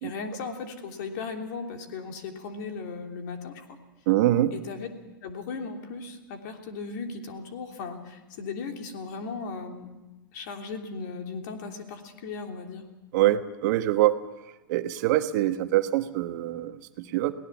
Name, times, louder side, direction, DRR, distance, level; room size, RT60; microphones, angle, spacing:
voice 1, 0.0-3.6 4.5-4.9 5.2-9.9 10.3-12.8, left 4 dB, 60° left, 4 dB, 3.2 m, -37 dB
voice 2, 4.1-4.5 13.1-14.2 14.7-17.3, right 14 dB, 55° right, 10 dB, 1.2 m, -24 dB
23.0 x 18.0 x 7.3 m, 1.1 s
hypercardioid pair, 105°, 11 cm